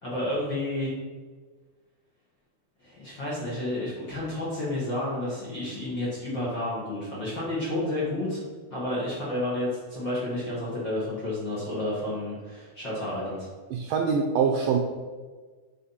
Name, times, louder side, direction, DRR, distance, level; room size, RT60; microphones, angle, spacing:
voice 1, 0.0-0.9 2.8-8.4 8.7-13.5, left 1 dB, 45° left, -7 dB, 1.6 m, -31 dB
voice 2, 13.7-14.8, right 6 dB, 80° right, 2 dB, 2.0 m, -24 dB
7.0 x 4.9 x 5.8 m, 1.4 s
omnidirectional pair, 4.6 m